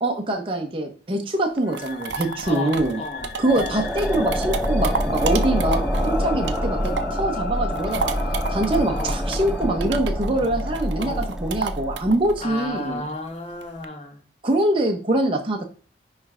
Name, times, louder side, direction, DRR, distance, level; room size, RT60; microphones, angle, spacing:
voice 1, 0.0-3.0 3.4-8.1 8.5-13.1 14.4-15.7, right 1 dB, 30° right, 3 dB, 0.7 m, -24 dB
sound 1, 1.4-7.2 7.6-13.8, right 5 dB, 80° right, 0.6 m, -32 dB
sound 2, 1.6-9.8, left 5 dB, 55° left, 0.5 m, -37 dB
voice 2, 2.4-3.3 8.9-9.2 11.0-11.3 12.4-14.2, left 2 dB, 35° left, 3 dB, 1.2 m, -33 dB
sound 3, 3.2-12.5, equal, ahead, 0.4 m, -26 dB
9.7 x 3.3 x 3.6 m, 0.39 s
head